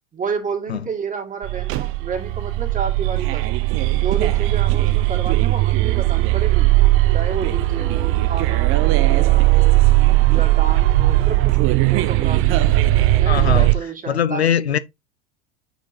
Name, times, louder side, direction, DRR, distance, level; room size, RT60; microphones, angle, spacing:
voice 1, 0.1-3.5 3.9-6.7 7.1-9.8 10.3-12.8 13.2-14.7, right 6 dB, 25° right, 2.4 m, -30 dB
sound 1, 1.4-13.7, right 17 dB, 45° right, 0.7 m, -17 dB
voice 2, 13.3-13.7 14.1-14.8, left 8 dB, 90° left, 0.6 m, -21 dB
9.2 x 4.6 x 2.8 m
figure-of-eight pair, 75°, 31 cm